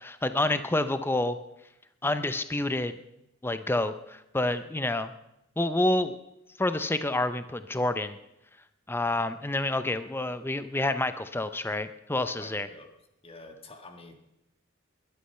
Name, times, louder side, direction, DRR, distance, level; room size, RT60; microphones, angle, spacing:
voice 1, 0.0-1.4 2.0-2.9 3.4-5.1 5.6-6.2 6.6-8.2 8.9-12.7, left 2 dB, 10° left, 11 dB, 0.6 m, -28 dB
voice 2, 12.4-12.9 13.2-14.2, left 2 dB, 30° left, 6 dB, 1.6 m, -47 dB
21.0 x 11.5 x 5.6 m, 0.87 s
head